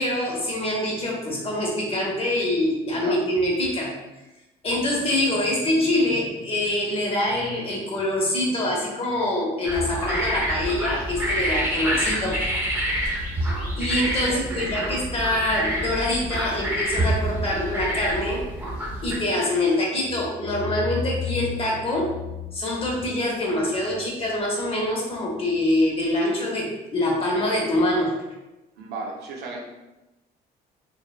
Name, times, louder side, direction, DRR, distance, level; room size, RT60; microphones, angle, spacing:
voice 1, 0.0-3.9 4.6-12.4 13.8-18.4 19.0-22.2 22.5-28.2, left 1 dB, 35° left, -2 dB, 0.8 m, -25 dB
sound 1, 9.6-19.2, right 1 dB, 10° right, 0.7 m, -27 dB
voice 2, 14.2-14.8 28.8-29.6, right 3 dB, 80° right, -1 dB, 0.6 m, -35 dB
3.0 x 2.0 x 2.3 m, 1.0 s
cardioid pair, 110°, 17 cm